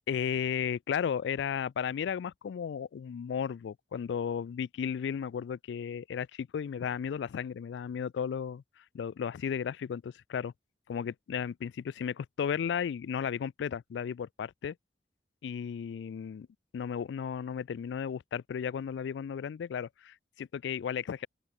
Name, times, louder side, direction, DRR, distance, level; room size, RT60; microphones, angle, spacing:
voice 1, 0.1-8.6 8.9-10.5 10.9-14.8 15.4-16.5 16.7-21.3, left 7 dB, 80° left, 0.3 m, -34 dB
open air
head